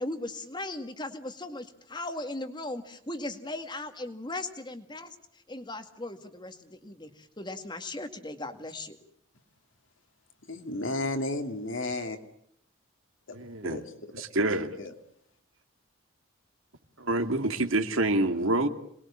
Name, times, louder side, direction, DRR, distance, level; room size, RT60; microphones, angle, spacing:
voice 1, 0.0-9.0, left 2 dB, 20° left, 2.0 m, -38 dB
voice 2, 10.5-12.2 13.6-13.8 14.8-14.9, left 2 dB, 65° left, 2.8 m, -32 dB
voice 3, 13.3-13.8 14.1-14.9 17.0-18.7, right 2 dB, 75° right, 2.3 m, -27 dB
27.0 x 21.0 x 8.7 m
head